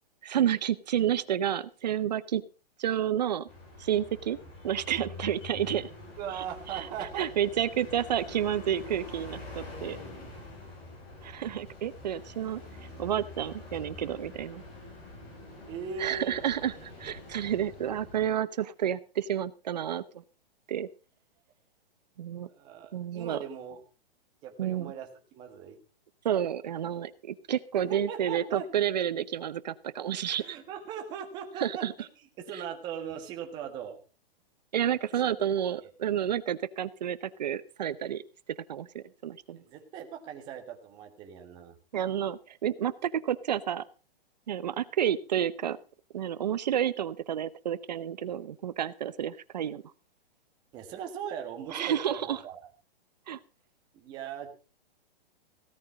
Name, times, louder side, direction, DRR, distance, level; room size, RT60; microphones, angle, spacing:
voice 1, 0.2-2.4 2.8-3.5 3.8-4.4 4.6-5.9 6.7-6.9 7.2-10.0 11.2-12.6 13.0-14.6 16.0-20.0 20.7-20.9 22.2-22.5 22.9-23.4 24.6-24.9 26.2-30.6 31.6-31.9 34.7-38.2 38.7-39.6 41.9-43.8 44.5-45.8 46.1-49.8 51.7-52.4 53.3-53.4, right 10 dB, 45° right, 17 dB, 0.9 m, -30 dB
sound 1, 3.5-18.3, left 2 dB, 20° left, 4.3 m, -45 dB
voice 2, 6.2-7.3 15.7-16.4 22.5-23.8 24.4-25.8 27.7-28.7 30.4-34.0 35.2-35.3 35.6-35.9 39.5-41.7 50.7-52.7 53.9-54.5, right 8 dB, 15° right, 4 dB, 1.5 m, -40 dB
16.5 x 9.3 x 5.0 m, 0.34 s
hypercardioid pair, 175°, 30 cm